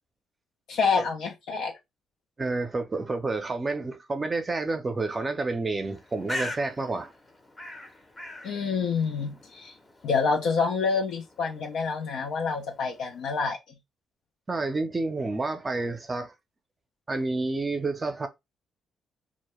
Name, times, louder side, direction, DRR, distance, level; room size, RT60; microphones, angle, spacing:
voice 1, 0.7-1.7 8.4-9.7 10.0-13.6, left 5 dB, 75° left, 0.4 m, -27 dB
voice 2, 2.4-7.1 14.5-16.3 17.1-18.3, right 3 dB, 25° right, 0.5 m, -29 dB
Bird, 5.8-13.4, left 1 dB, 20° left, 0.6 m, -43 dB
2.2 x 2.1 x 2.9 m
cardioid pair, 90°, 0 cm